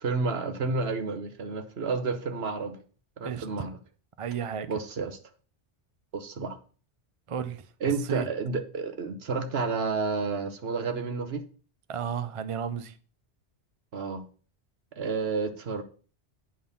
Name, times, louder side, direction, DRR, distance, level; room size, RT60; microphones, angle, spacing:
voice 1, 0.0-2.8 3.2-3.8 4.7-5.2 6.1-6.6 7.8-11.4 13.9-14.3 15.0-15.8, right 4 dB, 60° right, 1.2 m, -30 dB
voice 2, 4.2-4.7 7.3-7.6 8.1-8.2 11.9-12.9, right 7 dB, 40° right, 0.5 m, -32 dB
8.9 x 3.8 x 6.8 m
omnidirectional pair, 1.2 m